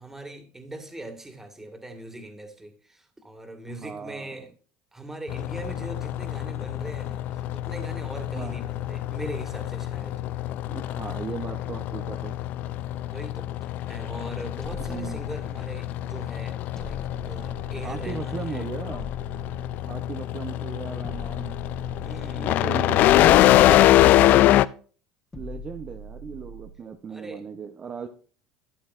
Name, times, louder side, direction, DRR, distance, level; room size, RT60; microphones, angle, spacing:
voice 1, 0.0-4.5 4.9-10.2 13.1-18.7 21.9-22.6 27.1-27.4, right 1 dB, 10° right, 4 dB, 2.0 m, -40 dB
voice 2, 3.8-4.4 8.3-8.5 10.7-12.4 14.8-15.2 17.8-19.1 19.9-21.6 22.3-24.5 25.3-28.1, right 6 dB, 35° right, 6 dB, 0.8 m, -37 dB
sound 1, 5.3-24.7, left 14 dB, 55° left, 0.4 m, -24 dB
sound 2, 25.3-26.9, left 1 dB, 20° left, 1.6 m, -42 dB
12.5 x 8.5 x 2.5 m, 0.41 s
supercardioid pair, 105°, 4 cm